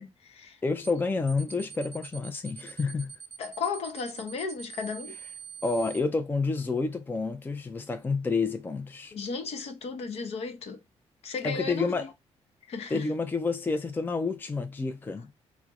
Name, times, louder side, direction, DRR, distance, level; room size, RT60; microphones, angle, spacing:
voice 1, 0.0-0.6 3.4-5.2 9.1-10.8 11.2-12.1 12.7-13.1, left 5 dB, 65° left, 0.9 m, -35 dB
voice 2, 0.6-3.1 5.6-9.1 11.4-12.1 12.9-15.3, left 3 dB, 20° left, 0.4 m, -29 dB
sound 1, 0.8-1.0 1.3-6.0, right 7 dB, 20° right, 1.2 m, -44 dB
4.4 x 2.1 x 2.3 m
cardioid pair, 100°, 11 cm